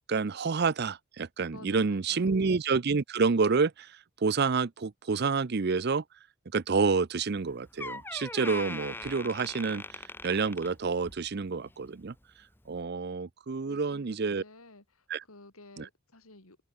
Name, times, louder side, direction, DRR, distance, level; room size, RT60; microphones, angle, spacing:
voice 1, 0.0-6.0 6.5-12.1 12.7-14.4 15.1-15.2 15.8-15.9, right 4 dB, 50° right, 0.5 m, -28 dB
voice 2, 1.5-2.3 13.6-16.6, left 2 dB, 85° left, 4.4 m, -52 dB
Door, 7.3-7.4 7.8-11.3 11.6-11.9 12.6-12.7, left 2 dB, 10° left, 1.6 m, -41 dB
head